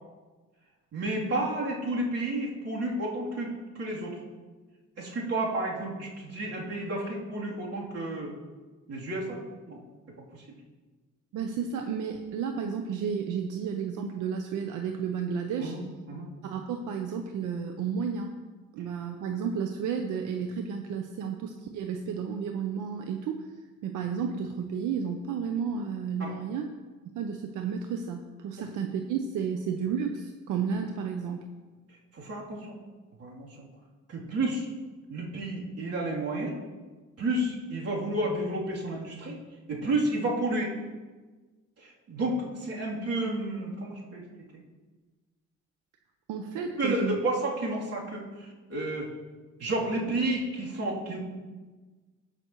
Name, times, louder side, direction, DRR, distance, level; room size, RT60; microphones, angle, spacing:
voice 1, 0.9-4.2 5.0-8.3 8.9-9.4 9.7-9.8 10.3-10.5 15.6-16.3 26.2-26.3 32.1-32.8 33.2-33.6 34.1-34.7 35.1-36.6 37.2-39.4 39.7-40.7 41.8-44.2 44.5-44.6 46.8-49.1 49.6-51.2, right 1 dB, 55° right, -5 dB, 3.1 m, -31 dB
voice 2, 11.3-15.7 16.4-18.3 18.7-23.5 23.8-26.7 27.1-31.5 46.3-47.2, right 6 dB, 85° right, 5 dB, 0.7 m, -32 dB
17.5 x 5.9 x 3.1 m, 1.3 s
cardioid pair, 90°, 30 cm